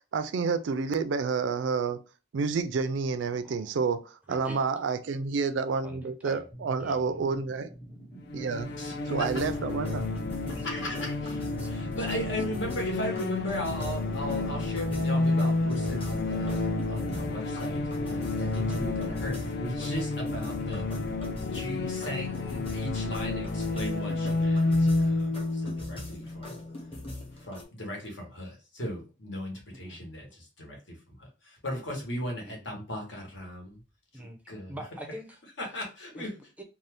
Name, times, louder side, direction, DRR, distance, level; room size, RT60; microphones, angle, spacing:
voice 1, 0.0-2.0 2.3-4.0 4.3-7.7 8.3-8.7 9.1-10.1, right 5 dB, 75° right, 0.4 m, -29 dB
voice 2, 3.4-3.8 4.3-4.7 5.8-6.4 6.8-7.2 10.6-10.7 11.6-11.7 12.0-12.1 18.4-18.5 29.7-30.1 32.4-32.6 34.1-35.4 36.1-36.6, equal, 10° right, 0.4 m, -45 dB
sound 1, 6.5-19.5, right 1 dB, 15° left, 0.8 m, -47 dB
sound 2, 8.3-26.9, left 2 dB, 55° left, 0.4 m, -30 dB
voice 3, 8.8-9.3 10.6-11.1 11.6-20.8 21.1-26.6 27.4-33.8 34.1-34.8 35.6-36.3, equal, 75° left, 1.2 m, -37 dB
sound 3, 9.2-27.6, left 1 dB, 30° left, 1.1 m, -44 dB
2.6 x 2.4 x 3.4 m
head